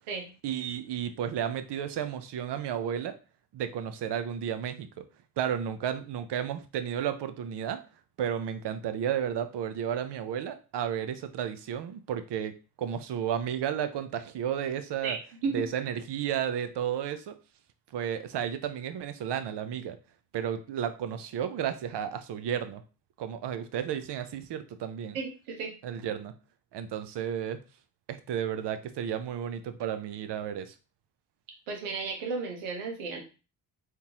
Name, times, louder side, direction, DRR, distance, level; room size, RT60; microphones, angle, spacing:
voice 1, 0.4-3.2 3.5-5.0 5.4-7.8 8.2-15.2 15.5-17.4 17.9-20.0 20.3-22.8 23.2-25.2 25.8-26.3 26.7-27.6 28.1-30.7, right 9 dB, 55° right, 10 dB, 0.7 m, -32 dB
voice 2, 25.1-25.7 31.7-33.2, right 4 dB, 85° right, 2 dB, 1.1 m, -33 dB
3.6 x 2.9 x 2.9 m, 0.33 s
supercardioid pair, 55°, 49 cm